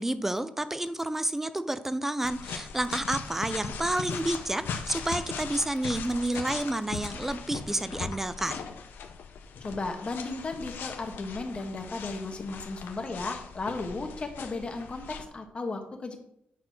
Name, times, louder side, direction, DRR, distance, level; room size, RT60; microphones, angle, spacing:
voice 1, 0.0-8.6, right 1 dB, 10° right, 12 dB, 0.5 m, -30 dB
sound 1, 2.2-15.2, left 6 dB, 85° left, 1.0 m, -39 dB
voice 2, 9.6-16.2, left 3 dB, 30° left, 4 dB, 1.5 m, -35 dB
9.6 x 4.2 x 6.0 m, 0.76 s
cardioid pair, 125°, 3 cm